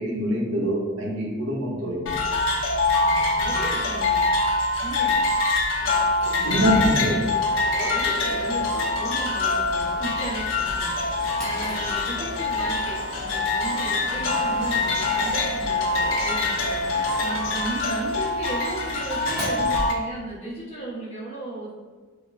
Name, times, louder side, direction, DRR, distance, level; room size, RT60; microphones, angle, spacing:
voice 1, 0.0-2.2 6.4-7.2, equal, 70° right, -3 dB, 0.7 m, -24 dB
sound 1, 2.1-19.9, left 3 dB, 65° left, 0.5 m, -24 dB
voice 2, 3.4-4.2 4.8-5.2 5.8-6.7 7.8-10.9 11.4-21.7, right 2 dB, 30° left, -7 dB, 0.9 m, -35 dB
sound 2, 6.2-17.7, equal, 20° right, 0.5 m, -40 dB
Drawer open or close, 11.3-20.7, equal, 5° left, 0.9 m, -42 dB
5.0 x 2.1 x 2.5 m, 1.4 s
head